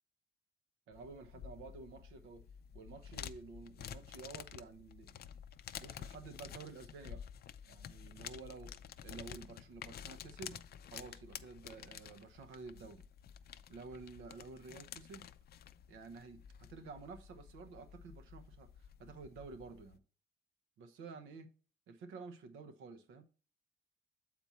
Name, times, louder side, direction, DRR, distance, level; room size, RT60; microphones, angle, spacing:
sound 1, 0.9-20.0, left 9 dB, 55° left, 0.4 m, -51 dB
voice 1, 0.9-2.4 2.7-5.2 5.8-7.2 7.7-8.7 9.0-13.0 13.7-15.3 15.9-20.0 20.8-21.5 21.9-23.2, right 4 dB, 90° right, 1.0 m, -51 dB
7.2 x 4.4 x 4.2 m
cardioid pair, 90°, 20 cm